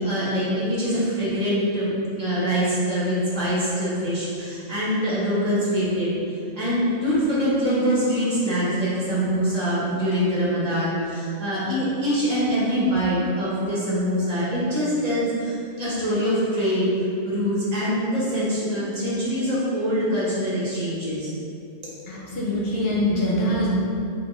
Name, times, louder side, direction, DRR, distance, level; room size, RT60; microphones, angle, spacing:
voice 1, 0.0-6.1 6.5-16.9 17.2-21.3, equal, 30° right, -9 dB, 1.3 m, -24 dB
voice 2, 22.1-23.7, left 1 dB, 55° left, -5 dB, 1.0 m, -23 dB
3.9 x 3.4 x 3.6 m, 2.5 s
omnidirectional pair, 1.3 m